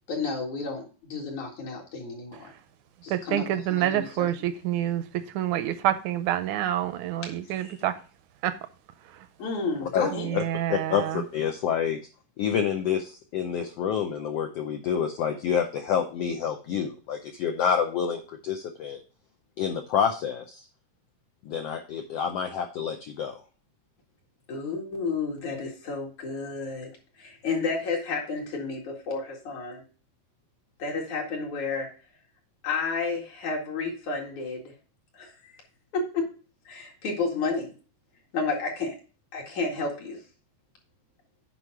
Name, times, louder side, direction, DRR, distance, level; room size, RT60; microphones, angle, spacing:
voice 1, 0.1-2.5 3.0-4.3 7.6-7.8 9.4-10.3 24.5-26.9 27.2-29.8 30.8-31.9 32.6-34.6 35.1-35.5 35.9-36.3 36.7-37.7 38.3-38.9 39.3-40.2, left 4 dB, 65° left, -1 dB, 3.3 m, -31 dB
voice 2, 3.1-8.0 8.4-8.6 9.1-9.3 10.1-11.2, right 12 dB, 80° right, 11 dB, 1.8 m, -28 dB
voice 3, 9.8-10.4 10.7-12.0 12.4-19.0 19.6-20.7 21.4-23.4, left 7 dB, 90° left, 5 dB, 1.4 m, -28 dB
8.3 x 5.5 x 4.7 m, 0.36 s
omnidirectional pair, 3.7 m